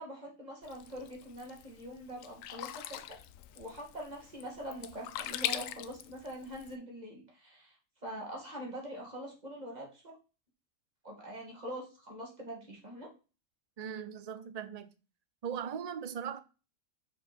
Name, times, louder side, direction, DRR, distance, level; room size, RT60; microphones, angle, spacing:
voice 1, 0.0-3.2 3.5-7.8 8.0-10.2 11.0-13.1, equal, 30° right, 2.4 m, -44 dB
Sink (filling or washing), 0.6-6.7, left 11 dB, 75° left, 0.9 m, -42 dB
voice 2, 13.8-14.9 15.4-16.4, right 7 dB, 85° right, 0.3 m, -39 dB
6.2 x 4.9 x 4.3 m
omnidirectional pair, 1.4 m